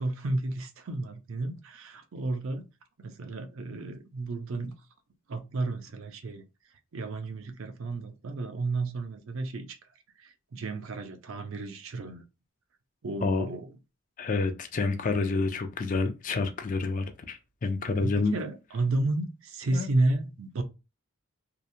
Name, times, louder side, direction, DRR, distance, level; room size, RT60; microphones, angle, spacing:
voice 1, 0.0-2.7 3.0-4.7 5.3-6.4 6.9-9.8 10.2-12.2 13.0-13.7 18.0-20.6, right 2 dB, 65° right, 0.5 m, -32 dB
voice 2, 14.2-18.4 19.7-19.9, left 3 dB, 35° left, 0.3 m, -28 dB
2.8 x 2.0 x 2.5 m
head